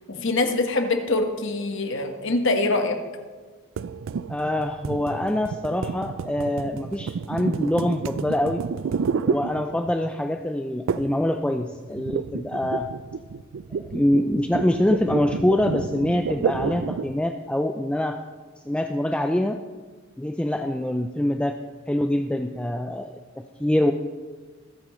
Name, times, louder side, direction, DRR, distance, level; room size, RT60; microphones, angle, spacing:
voice 1, 0.1-3.0, left 2 dB, 65° left, 5 dB, 1.4 m, -24 dB
sound 1, 3.8-10.1 10.9-11.3 11.5-17.2, right 6 dB, 70° right, 0.4 m, -30 dB
voice 2, 4.3-8.6 9.3-12.9 13.7-18.2 18.7-19.6 20.2-21.6 21.9-23.1 23.4-23.9, left 1 dB, 5° left, 5 dB, 0.4 m, -24 dB
21.0 x 8.6 x 3.1 m, 1.4 s
head